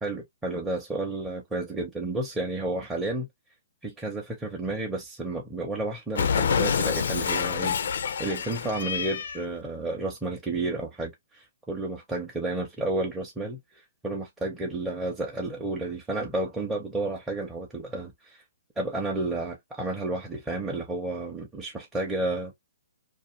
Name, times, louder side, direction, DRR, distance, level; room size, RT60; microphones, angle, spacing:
voice 1, 0.0-3.3 3.8-13.6 14.0-18.4 18.8-22.5, right 2 dB, 10° right, 0.6 m, -31 dB
Cat, 6.2-9.5, left 7 dB, 70° left, 0.4 m, -27 dB
2.5 x 2.4 x 3.0 m
hypercardioid pair, 155°, 0 cm